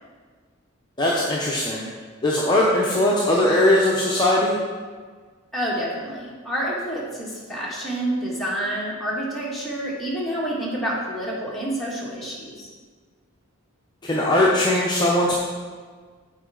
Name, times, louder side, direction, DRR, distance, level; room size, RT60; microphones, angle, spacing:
voice 1, 1.0-1.9 2.2-4.6 14.0-15.4, left 1 dB, 20° left, -4 dB, 0.6 m, -20 dB
voice 2, 5.5-12.7, right 1 dB, ahead, -6 dB, 1.3 m, -28 dB
8.1 x 4.4 x 3.8 m, 1.5 s
head